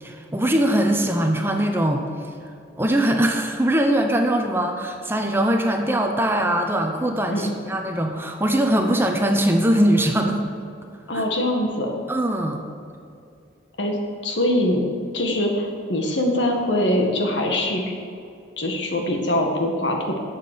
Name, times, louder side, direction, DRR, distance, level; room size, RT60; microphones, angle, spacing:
voice 1, 0.0-2.0 2.8-10.4 11.1-11.3 12.1-12.6, right 1 dB, 10° right, 3 dB, 0.8 m, -21 dB
voice 2, 11.1-12.0 13.8-14.0 14.2-14.8 15.1-17.8 18.6-20.2, left 1 dB, 75° left, 1 dB, 1.8 m, -23 dB
12.0 x 7.5 x 6.8 m, 2.4 s
head